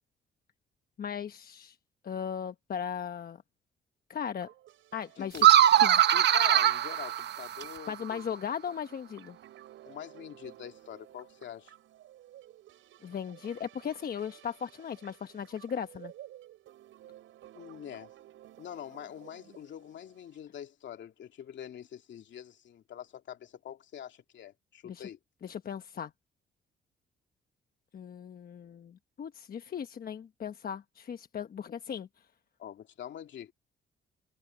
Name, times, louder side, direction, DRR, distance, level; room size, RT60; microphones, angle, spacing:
voice 1, 1.0-1.8 2.0-3.4 4.1-4.5 4.9-5.5 5.8-6.0 7.9-9.4 13.0-16.1 24.8-25.0 25.4-26.1 27.9-32.1, left 8 dB, 50° left, 1.1 m, -37 dB
sound 1, 4.4-20.4, right 13 dB, 85° right, 7.4 m, -54 dB
voice 2, 5.2-5.5 6.1-8.3 9.8-11.7 17.5-18.1 18.6-25.2 32.6-33.5, left 10 dB, 65° left, 2.7 m, -45 dB
sound 2, 5.3-7.8, right 11 dB, 60° right, 0.9 m, -22 dB
cardioid pair, 90°, 20 cm